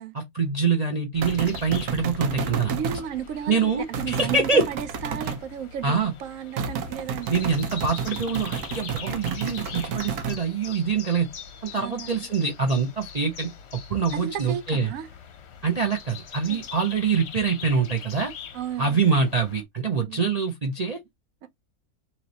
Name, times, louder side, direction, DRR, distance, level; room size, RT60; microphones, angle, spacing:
voice 1, 0.1-2.7 3.5-4.7 5.8-6.1 7.3-11.3 11.6-13.5 13.9-14.9 15.6-18.3 18.8-21.0, right 5 dB, 40° right, 0.5 m, -25 dB
sound 1, 1.1-19.6, left 6 dB, 55° left, 0.9 m, -43 dB
sound 2, 1.2-3.0 3.9-5.4 6.6-10.4, right 5 dB, 85° right, 1.2 m, -31 dB
voice 2, 2.7-7.3 11.7-12.3 14.1-15.1 16.5-16.6 18.5-19.2 19.9-20.3 21.4-21.5, right 9 dB, 70° right, 1.0 m, -34 dB
3.1 x 2.9 x 3.9 m
omnidirectional pair, 1.6 m